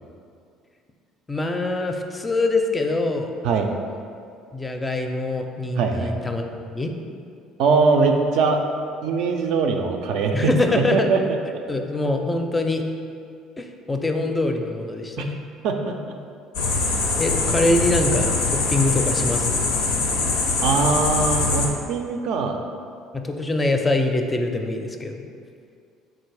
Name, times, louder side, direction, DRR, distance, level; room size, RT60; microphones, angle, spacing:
voice 1, 1.3-3.3 4.5-6.9 10.3-11.1 11.7-12.8 13.6-15.3 17.2-19.6 23.1-25.3, left 2 dB, 20° left, 4 dB, 0.4 m, -24 dB
voice 2, 5.8-6.1 7.6-8.6 9.0-10.5 10.9-11.4 15.2-15.3 15.6-16.2 20.6-22.6, right 4 dB, 70° right, 4 dB, 0.3 m, -21 dB
sound 1, 16.5-21.7, left 3 dB, 80° left, 0.5 m, -23 dB
3.7 x 2.6 x 4.7 m, 2.3 s
hypercardioid pair, 65°, 0 cm